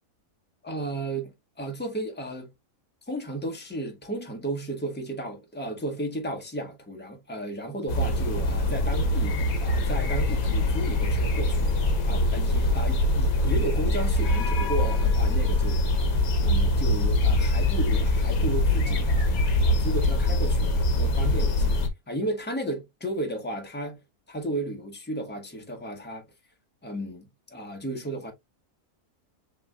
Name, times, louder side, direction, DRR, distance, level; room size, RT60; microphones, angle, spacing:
voice 1, 0.6-2.5 3.1-11.7 12.1-16.0 16.4-19.3 19.7-21.7 22.1-24.0 24.3-26.3 26.8-28.3, right 1 dB, 10° left, 1.0 m, -34 dB
sound 1, 7.9-21.9, left 1 dB, 70° left, 1.3 m, -23 dB
5.9 x 3.3 x 2.3 m
omnidirectional pair, 1.6 m